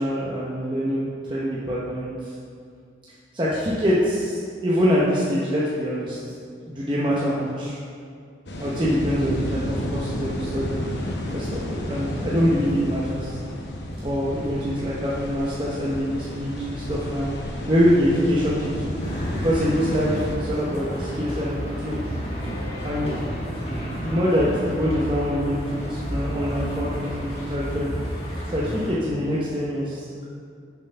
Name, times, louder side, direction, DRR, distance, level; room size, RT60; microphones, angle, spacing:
voice 1, 0.0-2.3 3.3-6.2 6.6-7.8 8.6-10.8 11.3-13.4 14.0-17.3 17.7-18.9 19.4-22.0 22.8-23.2 23.9-28.0 28.5-30.3, equal, 25° right, -7 dB, 0.7 m, -24 dB
sound 1, 8.5-20.4, left 1 dB, 65° left, 0.9 m, -31 dB
sound 2, 19.0-28.9, equal, 30° left, 1.4 m, -31 dB
6.7 x 4.4 x 5.4 m, 2.3 s
head